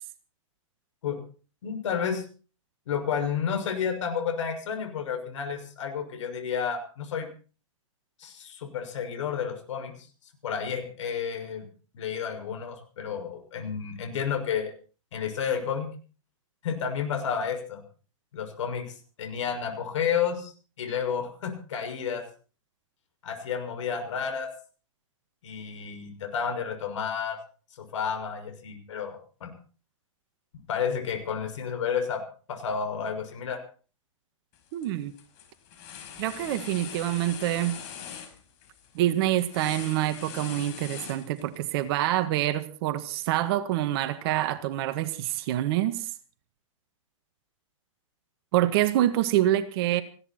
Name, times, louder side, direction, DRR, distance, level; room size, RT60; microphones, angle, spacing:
voice 1, 1.6-2.2 2.9-7.3 8.2-9.9 10.4-11.7 11.9-14.7 15.1-15.9 16.6-17.8 18.3-22.3 23.2-24.5 25.4-27.4 27.9-29.5 30.7-32.2 32.5-33.6, left 7 dB, 65° left, 6 dB, 6.4 m, -31 dB
sound 1, 34.5-34.9 35.2-41.7, left 8 dB, 40° left, 5.2 m, -42 dB
voice 2, 34.7-35.1 36.2-37.8 39.0-46.1 48.5-50.0, right 13 dB, 45° right, 11 dB, 1.7 m, -26 dB
19.5 x 16.0 x 4.4 m, 0.39 s
hypercardioid pair, 130°, 17 cm